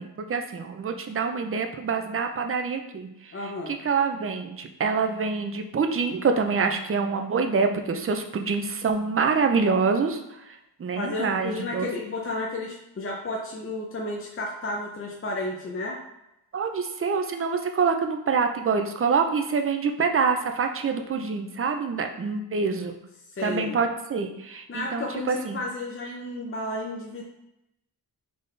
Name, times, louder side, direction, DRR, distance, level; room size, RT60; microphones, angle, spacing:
voice 1, 0.0-11.9 16.5-23.0 23.4-25.6, right 5 dB, 35° right, 6 dB, 0.4 m, -26 dB
voice 2, 3.3-3.8 10.9-16.0 23.3-23.8 24.7-27.2, left 2 dB, 35° left, -2 dB, 0.6 m, -32 dB
3.9 x 3.7 x 3.3 m, 0.85 s
wide cardioid pair, 145°, 40 cm